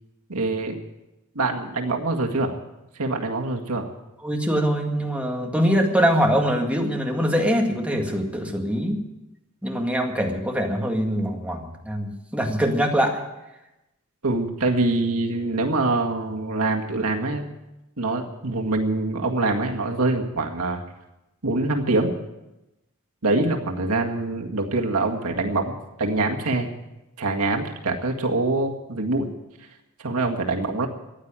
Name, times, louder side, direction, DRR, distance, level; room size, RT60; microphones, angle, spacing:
voice 1, 0.3-0.8 1.4-2.6 3.0-3.9 14.2-17.5 18.0-20.8 21.4-22.2 23.2-26.7 27.2-29.3 30.0-30.9, right 2 dB, 85° right, 2 dB, 1.9 m, -24 dB
voice 2, 4.2-9.0 9.6-13.2, equal, 5° right, 1 dB, 2.0 m, -23 dB
15.0 x 9.8 x 8.9 m, 0.96 s
head